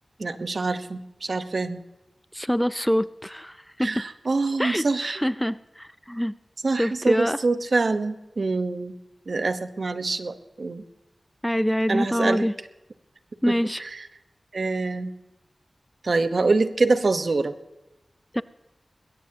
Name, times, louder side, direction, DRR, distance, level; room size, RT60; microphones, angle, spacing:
voice 1, 0.2-1.8 3.8-5.3 6.6-9.0 9.3-10.8 11.9-12.4 13.5-14.1 14.5-15.1 16.0-17.6, right 3 dB, 65° right, 11 dB, 1.1 m, -25 dB
voice 2, 2.3-4.0 4.6-6.3 6.8-7.4 11.4-12.5 13.4-13.8 18.3-18.4, equal, 5° left, 16 dB, 0.4 m, -25 dB
21.0 x 17.5 x 2.9 m, 0.99 s
wide cardioid pair, 75°, 0 cm